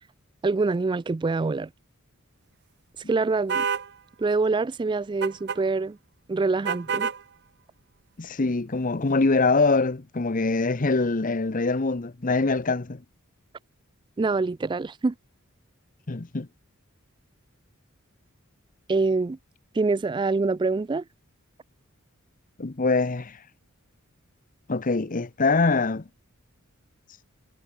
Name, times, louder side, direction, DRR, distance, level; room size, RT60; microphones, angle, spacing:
voice 1, 0.4-1.7 3.1-3.7 4.2-6.0 6.3-7.1 14.2-15.1 18.9-19.4 19.8-21.0, right 3 dB, 20° right, 0.3 m, -25 dB
sound 1, 3.5-3.9 5.2-5.6 6.6-7.2, right 6 dB, 50° right, 0.9 m, -27 dB
voice 2, 8.2-13.0 16.1-16.5 22.6-23.4 24.7-26.0, left 3 dB, 40° left, 0.8 m, -24 dB
head